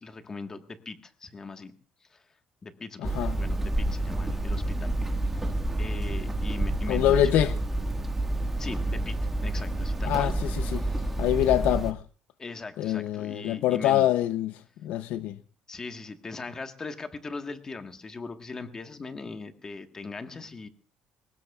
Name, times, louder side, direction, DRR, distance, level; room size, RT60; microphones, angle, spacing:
voice 1, 0.0-1.7 2.1-2.2 2.6-5.4 5.8-7.6 8.6-10.3 10.7-11.2 12.4-14.1 15.7-20.7, left 4 dB, 20° left, 1.4 m, -40 dB
voice 2, 3.0-3.3 6.9-7.5 10.0-10.3 10.7-10.8 11.2-12.0 12.8-15.4, left 12 dB, 75° left, 0.7 m, -25 dB
Hammer, 3.0-11.9, right 1 dB, 10° right, 1.7 m, -29 dB
22.5 x 19.5 x 2.4 m
cardioid pair, 145°, 3 cm